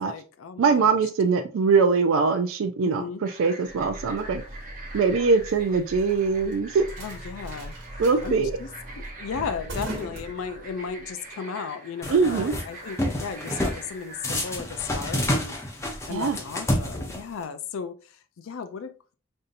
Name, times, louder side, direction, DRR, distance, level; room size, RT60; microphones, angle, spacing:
voice 1, 0.0-1.0 2.8-3.2 7.0-7.7 8.2-19.2, left 6 dB, 90° left, 0.4 m, -35 dB
voice 2, 0.6-4.4 4.9-6.9 8.0-8.5 12.1-12.5 16.1-16.4, right 5 dB, 80° right, 0.3 m, -22 dB
sound 1, 3.2-14.6, right 2 dB, 40° right, 0.9 m, -44 dB
sound 2, 3.7-11.0, right 1 dB, 65° right, 1.3 m, -39 dB
sound 3, 12.0-12.6 13.0-13.8 14.2-17.4, left 1 dB, 15° left, 0.6 m, -28 dB
5.3 x 2.7 x 2.5 m
head